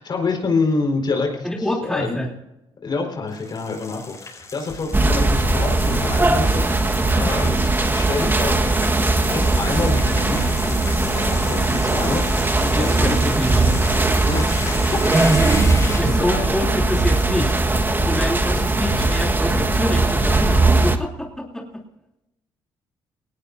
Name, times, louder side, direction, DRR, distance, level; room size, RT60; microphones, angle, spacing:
voice 1, 0.0-2.2 2.8-8.8 9.2-10.5 11.1-13.3 14.3-14.5 15.2-16.5, left 4 dB, 50° left, 2 dB, 4.8 m, -27 dB
voice 2, 1.4-2.3 12.7-13.8 16.0-17.5 18.1-21.8, left 1 dB, 5° left, 0 dB, 3.3 m, -26 dB
sound 1, 3.3-16.3, left 3 dB, 30° left, 6.3 m, -35 dB
sound 2, 4.9-21.0, right 2 dB, 20° right, 1.6 m, -19 dB
sound 3, 9.1-13.6, left 5 dB, 75° left, 2.0 m, -40 dB
19.0 x 18.5 x 2.7 m, 0.92 s
supercardioid pair, 70°, 10 cm